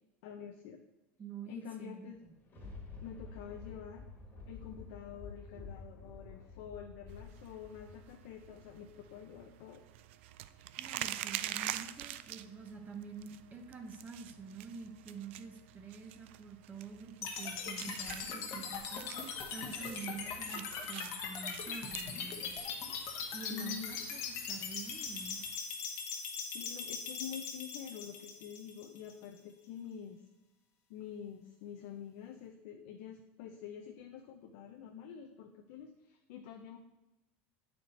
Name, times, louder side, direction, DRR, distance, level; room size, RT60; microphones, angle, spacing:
voice 1, 0.2-0.8 1.5-2.2 3.0-4.1 4.5-9.8 23.5-24.2 26.5-30.2 30.9-36.8, left 8 dB, 75° left, 2 dB, 0.6 m, -47 dB
voice 2, 1.2-2.3 10.8-19.1 19.5-22.5 23.3-25.4, right 5 dB, 25° right, 4 dB, 0.8 m, -47 dB
Thunder, 2.1-9.7 10.1-10.2, left 4 dB, 30° left, 1.5 m, -50 dB
sound 1, 7.1-25.6, right 13 dB, 80° right, 0.3 m, -47 dB
sound 2, 17.2-29.2, left 5 dB, 55° left, 1.1 m, -41 dB
8.4 x 4.3 x 4.3 m, 1.0 s
supercardioid pair, 120°, 6 cm